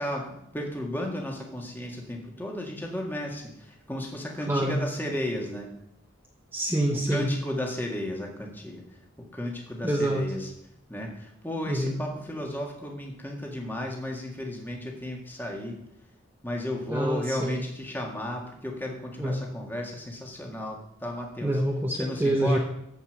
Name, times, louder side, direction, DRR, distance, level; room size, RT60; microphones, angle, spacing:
voice 1, 0.0-5.7 7.1-8.8 9.2-10.5 10.9-15.8 16.4-21.6 22.0-22.6, left 1 dB, 10° left, 0 dB, 1.8 m, -34 dB
voice 2, 4.5-4.8 6.5-7.3 9.8-10.3 11.7-12.0 16.9-17.6 19.2-19.4 21.4-22.6, right 1 dB, 10° right, -1 dB, 1.1 m, -26 dB
14.5 x 5.3 x 6.3 m, 0.77 s
head